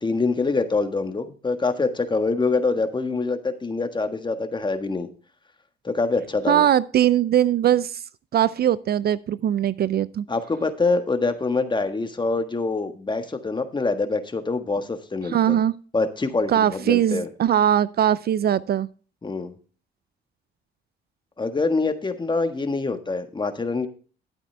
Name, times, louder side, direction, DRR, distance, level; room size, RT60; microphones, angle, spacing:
voice 1, 0.0-5.1 5.8-6.7 10.3-15.6 15.9-17.3 19.2-19.5 21.4-23.9, left 3 dB, 25° left, 7 dB, 1.5 m, -25 dB
voice 2, 6.5-7.9 8.3-10.2 15.3-15.7 16.5-18.9, right 10 dB, 55° right, 19 dB, 0.4 m, -20 dB
12.0 x 8.7 x 3.3 m, 0.39 s
cardioid pair, 90°, 20 cm